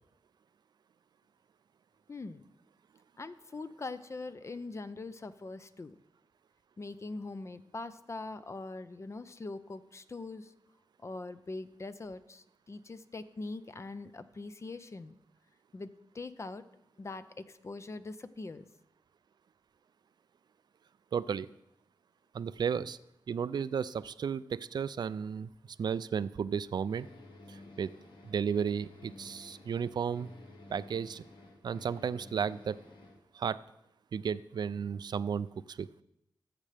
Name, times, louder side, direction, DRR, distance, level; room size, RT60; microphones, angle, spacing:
voice 1, 2.1-2.5 3.2-6.0 6.8-10.5 11.0-15.2 15.7-15.9 16.1-16.6 17.0-18.7, left 3 dB, 35° left, 12 dB, 0.5 m, -42 dB
voice 2, 21.1-21.5 22.3-23.0 23.3-25.5 25.8-27.1 27.5-27.9 28.2-30.3 30.7-31.2 31.6-32.8 33.3-33.6 34.1-35.9, right 7 dB, 60° right, 16 dB, 0.3 m, -33 dB
sound 1, 26.8-33.2, left 2 dB, 75° left, 1.3 m, -53 dB
14.0 x 7.5 x 3.4 m, 0.84 s
cardioid pair, 75°, 8 cm